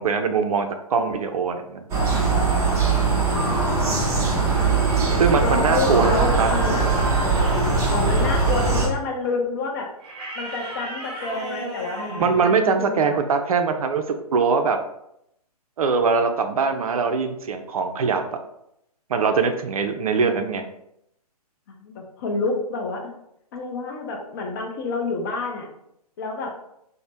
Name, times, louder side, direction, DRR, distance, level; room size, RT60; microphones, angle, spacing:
voice 1, 0.0-1.8 5.2-6.5 12.2-14.0 14.3-14.8 15.8-18.2 19.1-20.6, right 5 dB, 65° right, 7 dB, 0.4 m, -22 dB
sound 1, 1.9-8.9, right 4 dB, 15° right, 0.6 m, -21 dB
voice 2, 3.3-3.8 4.3-4.5 5.4-6.8 7.9-9.9 10.4-13.2 21.7-23.1 23.5-25.7 26.2-26.5, left 3 dB, 30° left, 1 dB, 0.5 m, -28 dB
sound 2, 6.0-7.8 10.0-12.5, right 1 dB, 45° right, 1.2 m, -33 dB
3.1 x 2.0 x 2.6 m, 0.78 s
hypercardioid pair, 135°, 20 cm